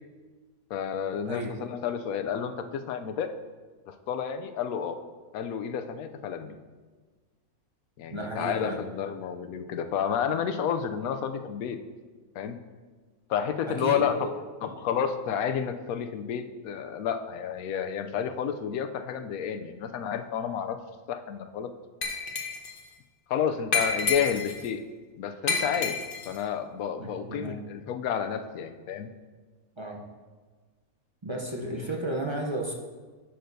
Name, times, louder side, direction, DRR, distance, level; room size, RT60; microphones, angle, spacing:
voice 1, 0.7-3.3 3.9-5.0 5.3-6.6 8.0-11.8 12.3-12.6 13.3-14.3 14.6-20.8 21.1-21.7 23.3-24.8 25.2-26.0 26.3-29.1, left 8 dB, 75° left, 8 dB, 1.0 m, -30 dB
voice 2, 8.1-8.8 13.7-14.3 27.0-27.6 29.8-30.1 31.2-32.7, right 1 dB, 35° right, 0 dB, 0.4 m, -33 dB
Glass, 22.0-22.8 23.7-24.7 25.5-26.4, left 5 dB, 40° left, 1.0 m, -29 dB
11.0 x 6.5 x 2.6 m, 1.4 s
omnidirectional pair, 1.6 m